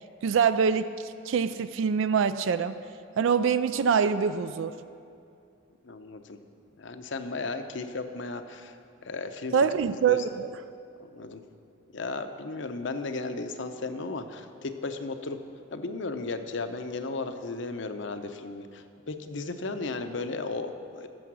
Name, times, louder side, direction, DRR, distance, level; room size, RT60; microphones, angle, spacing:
voice 1, 0.2-2.8 3.2-4.8 9.5-10.5, right 6 dB, 70° right, 13 dB, 0.4 m, -25 dB
voice 2, 5.8-6.4 6.8-8.8 9.0-9.5 10.1-10.2 11.1-11.4 11.9-15.4 15.7-21.1, left 3 dB, 60° left, 8 dB, 0.7 m, -35 dB
14.0 x 7.0 x 6.2 m, 2.5 s
head